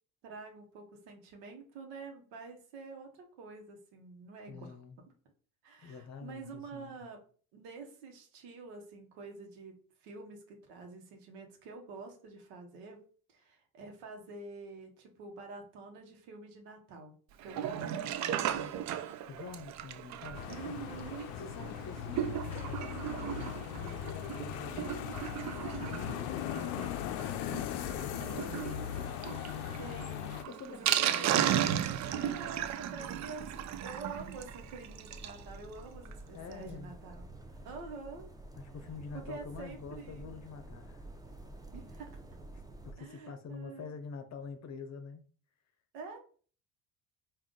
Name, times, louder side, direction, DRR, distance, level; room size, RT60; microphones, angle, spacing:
voice 1, 0.2-4.8 5.6-7.2 7.5-13.0 13.3-17.1 17.4-18.7 19.1-19.3 20.4-21.3 22.9-23.3 27.5-27.7 29.8-30.3 30.7-31.6 32.3-33.5 33.8-37.2 37.6-38.3 39.1-40.3 41.7-42.1 43.0-44.0 45.9-46.2, right 4 dB, 70° right, 1.2 m, -47 dB
voice 2, 4.5-4.9 5.8-7.0 19.3-20.8 21.4-25.3 25.8-29.2 30.5-31.3 32.0-32.5 36.3-36.9 38.6-41.0 42.8-45.2, left 5 dB, 40° left, 0.7 m, -46 dB
Sink (filling or washing), 17.4-35.4 35.8-35.9 36.1-36.2 36.5-36.6, right 10 dB, 45° right, 0.5 m, -36 dB
sound 1, 20.3-30.4, left 11 dB, 75° left, 0.5 m, -39 dB
sound 2, 31.2-42.9, right 2 dB, 10° right, 0.7 m, -50 dB
3.6 x 2.6 x 3.7 m
hypercardioid pair, 70°, 42 cm